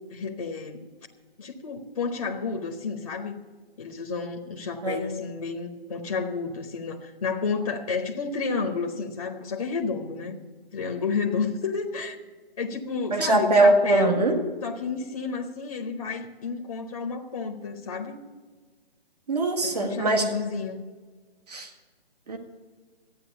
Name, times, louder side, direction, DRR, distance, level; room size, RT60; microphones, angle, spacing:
voice 1, 0.1-0.8 1.4-3.4 3.8-10.4 10.7-12.2 12.6-14.2 14.6-18.2 19.6-20.8, left 5 dB, 30° left, 3 dB, 0.9 m, -31 dB
voice 2, 4.8-5.2 13.1-14.4 19.3-20.3 21.5-21.7 22.3-22.4, right 2 dB, 40° right, 4 dB, 1.7 m, -22 dB
13.0 x 9.3 x 6.9 m, 1.4 s
hypercardioid pair, 170°, 31 cm